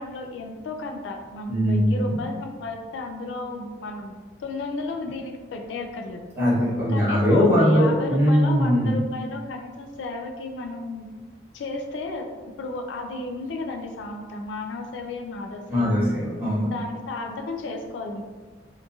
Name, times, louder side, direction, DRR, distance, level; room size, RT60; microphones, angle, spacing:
voice 1, 0.0-4.1 4.4-6.3 6.9-11.1 11.5-12.3 12.6-16.1 16.6-18.2, left 2 dB, 80° left, 4 dB, 0.3 m, -33 dB
voice 2, 1.5-2.1 6.4-9.0 15.7-16.7, equal, 15° right, -10 dB, 1.1 m, -20 dB
2.8 x 2.5 x 2.3 m, 1.4 s
head